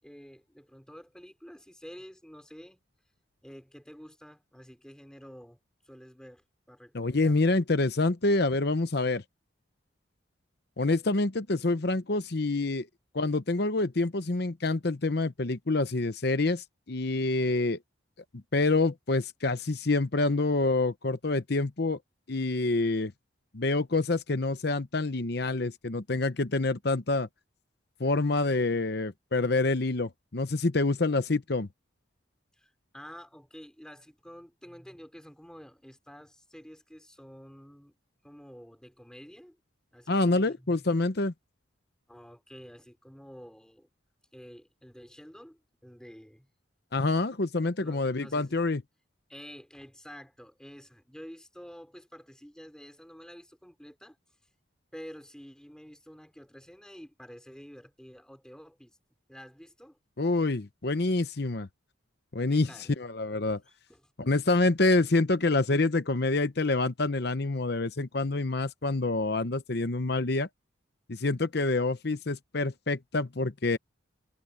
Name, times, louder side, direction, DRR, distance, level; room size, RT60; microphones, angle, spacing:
voice 1, 0.0-2.8 3.4-5.6 5.8-7.6 32.5-38.0 38.2-39.6 39.9-40.9 42.1-43.9 44.3-46.5 47.8-48.6 49.3-54.2 54.9-59.0 59.3-60.0 62.5-62.9 63.7-64.1, equal, 5° left, 4.8 m, -49 dB
voice 2, 6.9-9.2 10.8-12.9 13.1-17.8 18.5-22.0 22.3-23.1 23.5-27.3 28.0-31.7 40.1-41.3 46.9-48.8 60.2-61.7 62.3-62.7 63.0-63.6 64.2-70.5 71.1-73.8, left 2 dB, 55° left, 0.9 m, -27 dB
head